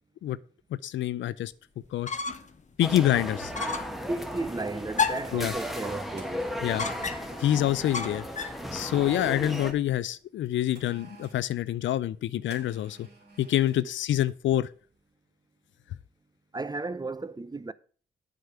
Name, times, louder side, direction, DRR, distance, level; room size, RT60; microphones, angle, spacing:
voice 1, 0.8-1.5 1.9-2.1 2.8-3.5 5.3-5.5 6.6-6.9 7.4-8.3 8.7-13.1 13.4-14.7, left 12 dB, 80° left, 0.5 m, -26 dB
sound 1, 1.4-1.6 2.2-2.5 2.8-4.0 4.6-7.6 8.8-9.9 10.7-11.4 12.5-13.8 14.2-14.4, right 4 dB, 60° right, 3.0 m, -52 dB
sound 2, 1.8-2.6 2.9-3.0 3.5-4.0 4.9-5.4 6.8-7.4 7.9-8.6, left 5 dB, 40° left, 0.9 m, -31 dB
sound 3, 2.8-9.7, equal, ahead, 1.5 m, -35 dB
voice 2, 4.1-6.5 13.8-13.9 16.5-17.7, right 2 dB, 20° right, 0.6 m, -34 dB
8.0 x 5.0 x 6.8 m
cardioid pair, 55°, 19 cm